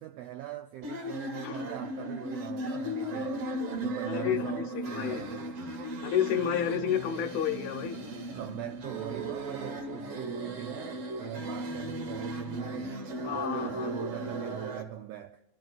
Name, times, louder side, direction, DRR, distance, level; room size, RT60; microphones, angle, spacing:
voice 1, 0.0-6.1 8.3-15.4, right 11 dB, 85° right, 1.4 m, -41 dB
sound 1, 0.8-14.8, right 1 dB, 60° right, 2.0 m, -36 dB
voice 2, 4.1-4.6 4.9-5.2 6.0-8.0 13.2-13.9, left 9 dB, 75° left, 1.7 m, -30 dB
27.0 x 12.0 x 2.4 m
omnidirectional pair, 3.4 m